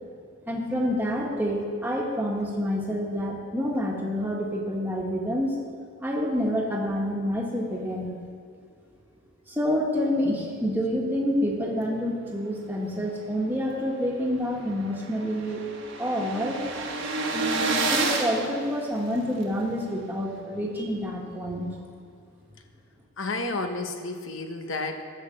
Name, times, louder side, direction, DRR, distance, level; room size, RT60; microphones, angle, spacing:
voice 1, 0.5-5.5 6.0-8.1 9.5-15.6 16.0-16.6 17.3-21.7, equal, 10° right, -2 dB, 1.5 m, -28 dB
sound 1, 13.9-14.0 14.3-14.4 14.6-19.4, right 3 dB, 65° right, 1.3 m, -30 dB
voice 2, 23.2-25.0, left 2 dB, 70° left, 6 dB, 0.9 m, -31 dB
11.5 x 6.4 x 7.5 m, 2.1 s
head